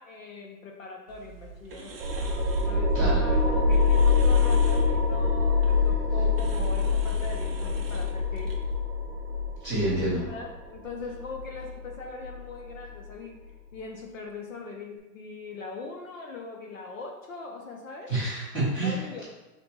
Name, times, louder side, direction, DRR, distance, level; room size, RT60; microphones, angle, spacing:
voice 1, 0.0-1.9 2.7-8.6 10.2-13.4 13.7-18.1 18.8-19.2, left 3 dB, 55° left, 1 dB, 0.6 m, -41 dB
sound 1, 1.1-8.8, right 5 dB, 40° right, 0.5 m, -44 dB
sound 2, 2.0-13.1, left 4 dB, 15° right, 1.3 m, -25 dB
voice 2, 9.6-10.2 18.1-19.0, right 2 dB, 5° left, -12 dB, 0.9 m, -27 dB
5.5 x 4.1 x 2.3 m, 1.1 s
hypercardioid pair, 175°, 49 cm